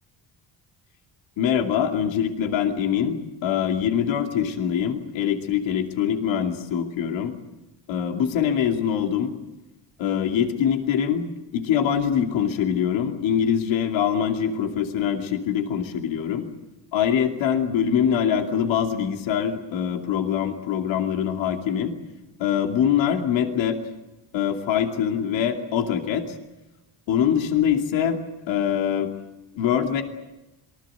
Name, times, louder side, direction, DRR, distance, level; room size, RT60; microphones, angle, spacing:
voice 1, 1.4-7.3 7.9-9.3 10.0-16.5 16.9-22.0 22.4-23.8 24.3-26.4 27.1-28.2 28.5-29.1 29.6-30.0, left 8 dB, 85° left, 4 dB, 2.8 m, -23 dB
26.5 x 20.5 x 8.0 m, 0.99 s
cardioid pair, 85°, 45 cm